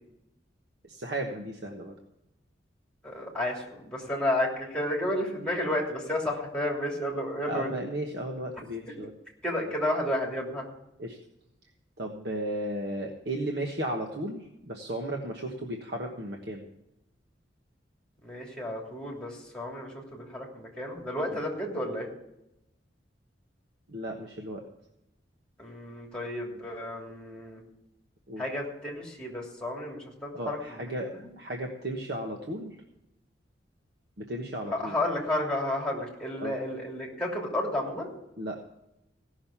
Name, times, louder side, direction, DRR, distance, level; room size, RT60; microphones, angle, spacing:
voice 1, 0.8-1.9 7.4-9.1 11.0-11.2 12.0-16.6 21.3-21.4 23.9-24.6 28.3-28.4 30.3-32.8 34.2-35.0 36.4-36.6 38.4-38.6, right 1 dB, 60° right, 1 dB, 1.3 m, -35 dB
voice 2, 3.0-7.7 9.4-10.6 18.2-22.1 25.6-27.6 28.4-30.9 31.1-31.3 34.8-38.1, left 1 dB, 5° left, -1 dB, 3.0 m, -32 dB
16.5 x 6.4 x 7.2 m, 0.87 s
head